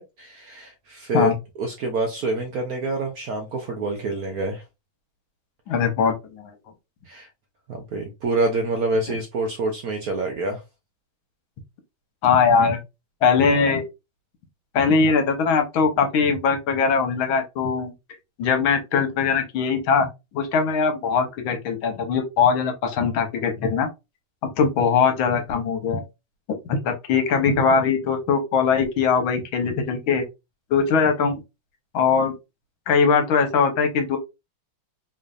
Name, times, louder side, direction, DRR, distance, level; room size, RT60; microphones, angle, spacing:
voice 1, 0.0-1.3 1.6-4.6 7.1-7.3 7.7-10.6, right 2 dB, 65° right, 0.9 m, -27 dB
voice 2, 5.7-6.5 12.2-12.8 13.2-13.9 14.7-17.9 18.4-23.9 24.4-26.0 26.7-30.2 30.7-31.4 31.9-32.3 32.9-34.2, left 5 dB, 80° left, 1.7 m, -21 dB
3.8 x 3.2 x 2.4 m
omnidirectional pair, 2.2 m